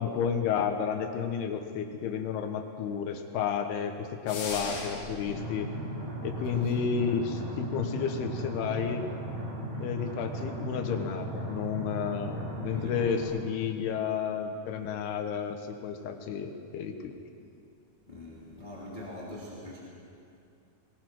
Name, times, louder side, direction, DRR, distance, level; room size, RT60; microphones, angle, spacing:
voice 1, 0.0-5.7 6.2-9.0 9.8-17.2, left 7 dB, 75° left, 6 dB, 3.1 m, -31 dB
sound 1, 4.3-5.3, left 3 dB, 60° left, 4.4 m, -37 dB
voice 2, 4.5-4.8 6.5-6.7 12.6-13.1 18.1-19.9, left 1 dB, 15° left, -5 dB, 2.1 m, -43 dB
sound 2, 5.2-13.2, right 1 dB, 40° right, 7.9 m, -36 dB
22.0 x 19.5 x 6.1 m, 2.5 s
omnidirectional pair, 4.7 m